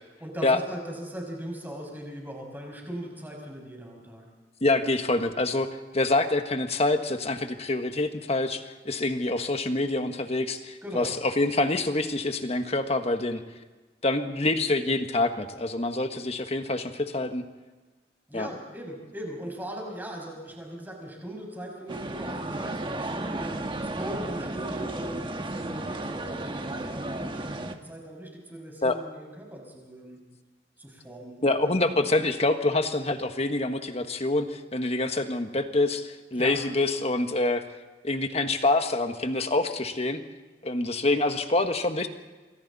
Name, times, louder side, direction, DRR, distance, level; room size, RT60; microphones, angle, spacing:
voice 1, 0.2-4.2 10.8-11.1 18.3-23.5 23.8-30.2 30.8-32.1 36.4-36.5, right 1 dB, 10° right, 0 dB, 6.2 m, -39 dB
voice 2, 4.6-5.7 5.9-13.4 14.0-17.4 18.3-18.5 28.8-29.0 31.4-37.6 38.0-40.2 40.6-42.1, left 2 dB, 35° left, 7 dB, 1.5 m, -26 dB
sound 1, 21.9-27.8, right 2 dB, 30° right, 1.4 m, -33 dB
27.5 x 24.0 x 4.2 m, 1.3 s
head